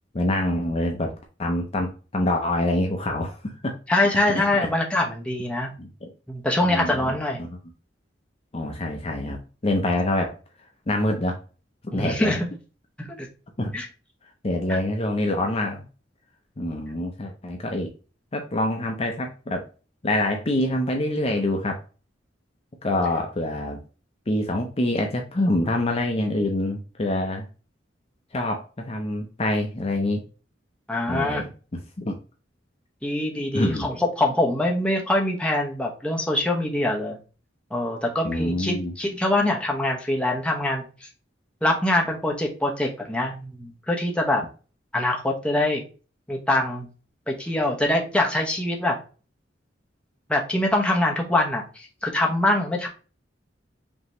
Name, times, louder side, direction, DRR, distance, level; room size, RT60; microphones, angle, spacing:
voice 1, 0.1-1.1 1.4-3.7 4.3-4.4 5.8-6.1 6.6-7.5 8.5-10.4 10.9-11.4 11.9-12.3 13.6-13.7 14.4-15.8 16.6-17.9 18.3-19.6 20.0-21.8 22.8-23.8 24.3-27.5 28.3-30.2 31.1-32.1 33.5-33.9 38.2-38.9, left 1 dB, 35° left, 3 dB, 0.6 m, -26 dB
voice 2, 3.9-5.7 6.3-7.4 11.9-12.5 13.0-13.3 13.7-13.9 14.7-14.8 30.9-31.4 33.0-37.2 37.7-41.1 41.6-44.4 44.9-45.8 46.3-46.9 47.3-49.0 50.3-52.9, left 1 dB, 5° left, -1 dB, 1.0 m, -24 dB
5.3 x 3.0 x 3.0 m, 0.35 s
head